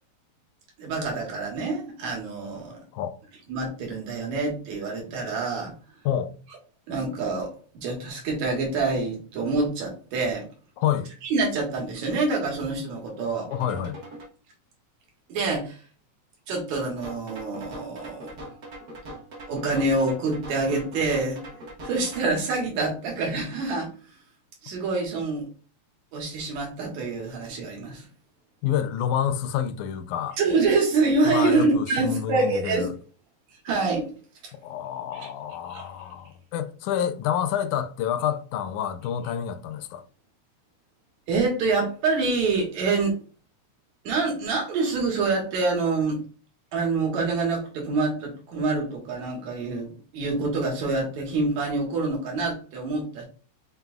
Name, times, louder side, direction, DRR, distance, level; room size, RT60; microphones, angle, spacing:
voice 1, 0.8-2.8 3.5-5.7 6.9-10.5 11.2-13.5 15.3-15.8 16.5-18.4 19.5-21.4 21.8-23.9 24.6-25.5 26.1-28.1 30.4-32.9 33.6-34.1 35.1-35.3 35.7-35.9 41.3-43.2 44.0-46.2 46.7-53.2, right 3 dB, 70° right, 2.7 m, -26 dB
voice 2, 10.8-11.1 13.5-14.0 28.6-30.4 31.3-32.9 34.5-40.0, left 9 dB, 85° left, 2.0 m, -28 dB
sound 1, 13.5-14.3 17.0-22.3, right 1 dB, 55° right, 1.1 m, -41 dB
5.8 x 4.0 x 2.3 m
omnidirectional pair, 3.4 m